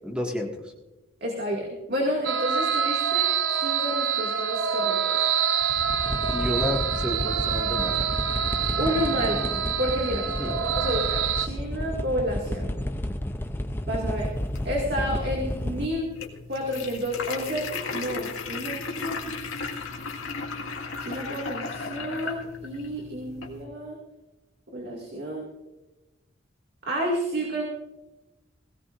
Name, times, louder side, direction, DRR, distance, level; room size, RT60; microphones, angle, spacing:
voice 1, 0.0-0.5 6.3-8.1 10.4-10.5, left 1 dB, 5° right, 0 dB, 1.9 m, -30 dB
voice 2, 1.2-3.3 3.5-5.2 8.8-9.5 9.8-12.7 13.9-14.3 14.6-16.1 16.5-19.2 21.0-24.0 24.7-25.4 26.9-27.6, equal, 55° right, -1 dB, 2.3 m, -30 dB
sound 1, 2.2-11.5, right 7 dB, 80° right, 0.8 m, -26 dB
sound 2, 5.6-15.9, left 1 dB, 10° left, 0.6 m, -31 dB
sound 3, 14.1-23.6, left 4 dB, 85° left, 2.0 m, -36 dB
21.0 x 16.5 x 2.6 m, 1.1 s
head